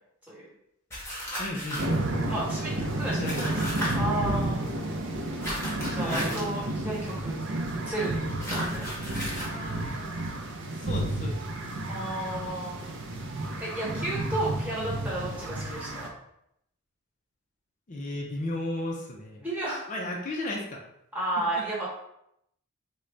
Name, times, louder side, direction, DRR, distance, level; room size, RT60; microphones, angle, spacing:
sound 1, 0.9-2.0 3.2-3.9 5.4-6.5 8.4-9.5, equal, 10° left, 0.8 m, -34 dB
voice 1, 1.4-1.8 3.0-3.5 5.9-6.6 9.4-10.2 10.6-11.4 17.9-19.5 19.9-20.8 21.6-21.7, left 1 dB, 35° left, -1 dB, 0.4 m, -35 dB
sound 2, 1.8-16.1, right 1 dB, 55° right, 0.5 m, -31 dB
voice 2, 2.3-4.7 5.9-7.4 7.9-9.0 11.9-13.0 13.6-16.1 19.4-19.8 21.1-21.9, right 1 dB, 10° right, -7 dB, 1.1 m, -33 dB
3.8 x 2.2 x 3.2 m, 0.77 s
head